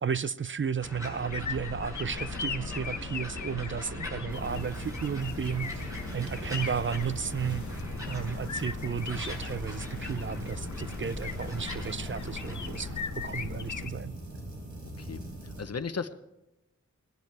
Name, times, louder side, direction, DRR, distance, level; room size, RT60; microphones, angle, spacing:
voice 1, 0.0-7.7 8.1-14.2, right 7 dB, 45° right, 0.5 m, -33 dB
sound 1, 0.8-13.0, left 1 dB, 10° right, 5.5 m, -42 dB
sound 2, 1.3-13.9, left 5 dB, 85° left, 1.0 m, -39 dB
sound 3, 4.3-15.6, right 1 dB, 85° right, 5.0 m, -41 dB
voice 2, 15.6-16.1, left 5 dB, 60° left, 1.0 m, -35 dB
19.5 x 10.5 x 4.7 m
wide cardioid pair, 75°, 29 cm